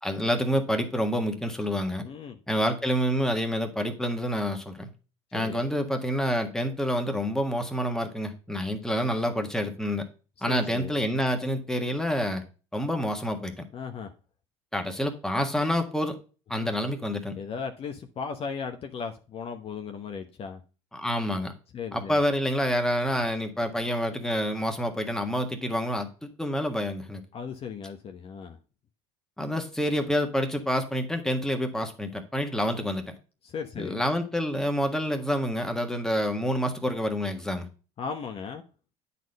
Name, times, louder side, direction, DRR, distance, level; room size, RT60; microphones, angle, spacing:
voice 1, 0.0-2.0 2.5-4.9 5.3-10.0 10.4-12.4 12.7-13.5 14.7-16.2 16.5-17.3 20.9-21.5 21.9-26.1 26.4-27.2 29.4-33.1 33.8-37.7, equal, 5° left, 1.5 m, -28 dB
voice 2, 2.0-2.4 5.3-5.6 10.5-11.0 13.7-14.1 16.6-16.7 17.3-20.6 21.7-22.2 27.3-28.6 33.4-34.0 38.0-38.6, left 6 dB, 40° left, 0.9 m, -36 dB
9.2 x 4.2 x 5.3 m
hypercardioid pair, 75°, 15 cm